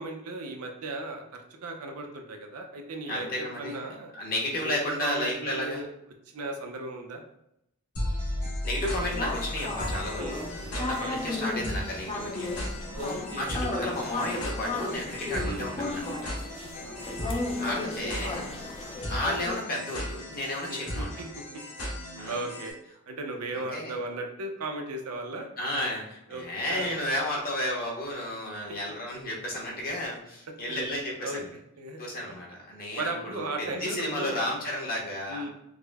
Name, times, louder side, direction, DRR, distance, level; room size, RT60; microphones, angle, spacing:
voice 1, 0.0-4.1 4.6-5.9 6.3-7.2 10.2-10.5 10.7-11.2 12.9-14.0 15.4-15.7 16.8-17.2 20.7-21.0 22.3-22.7 23.1-25.5 26.3-26.9 31.2-31.4 31.8-32.0 33.0-34.4 35.3-35.5, right 2 dB, 75° right, 3 dB, 0.6 m, -36 dB
voice 2, 3.1-3.9 4.1-5.8 8.6-12.7 13.1-16.3 17.3-18.4 19.1-21.2 22.1-22.4 23.5-24.0 25.6-31.5 32.0-35.5, left 1 dB, 45° left, -2 dB, 0.9 m, -33 dB
sound 1, 8.0-22.7, left 1 dB, 80° left, 1.5 m, -36 dB
sound 2, 9.0-19.6, left 3 dB, 25° left, 0.4 m, -35 dB
4.8 x 2.1 x 2.3 m, 0.80 s
head